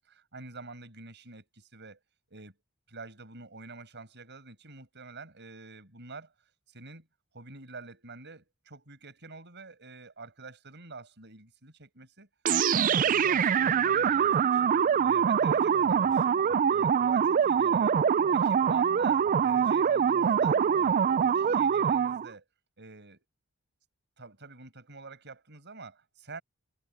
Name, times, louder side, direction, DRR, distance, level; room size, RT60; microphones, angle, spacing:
voice 1, 0.0-2.0 2.3-2.6 2.9-6.3 6.7-7.1 7.3-12.3 12.7-14.6 15.0-16.4 16.7-18.1 18.3-22.4 22.8-23.3 24.2-26.4, right 3 dB, 55° right, 6.0 m, -47 dB
sound 1, 12.4-22.3, right 7 dB, 40° right, 0.3 m, -24 dB
head